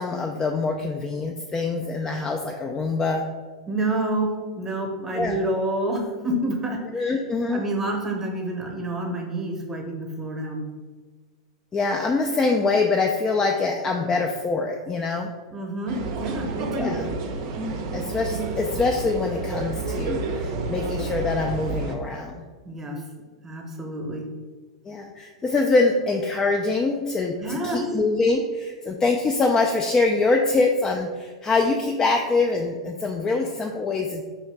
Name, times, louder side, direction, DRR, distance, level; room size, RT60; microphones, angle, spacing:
voice 1, 0.0-3.2 5.1-5.3 6.9-7.6 11.7-15.3 16.8-17.0 17.9-22.4 24.9-34.2, left 3 dB, 20° left, 2 dB, 0.3 m, -24 dB
voice 2, 3.7-7.0 7.5-10.6 15.5-17.0 22.6-23.0 23.4-24.3 27.4-27.8, right 1 dB, 10° right, 1 dB, 0.9 m, -28 dB
sound 1, 15.9-22.0, right 3 dB, 45° right, 0.6 m, -30 dB
4.6 x 3.1 x 3.3 m, 1.4 s
figure-of-eight pair, 95°, 3 cm